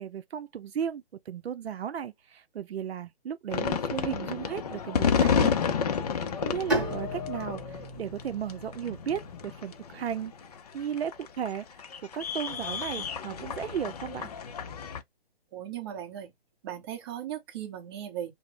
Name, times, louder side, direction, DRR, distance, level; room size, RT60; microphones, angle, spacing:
voice 1, 0.0-5.6 6.1-10.3 10.7-11.7 12.1-14.3, right 8 dB, 80° right, 0.5 m, -35 dB
sound 1, 3.5-15.0, left 6 dB, 40° left, 0.5 m, -30 dB
Bowed string instrument, 6.7-10.3, right 1 dB, 5° right, 1.4 m, -35 dB
voice 2, 15.5-16.3 16.6-18.3, right 10 dB, 25° right, 0.8 m, -37 dB
3.0 x 2.0 x 3.1 m
hypercardioid pair, 150°, 31 cm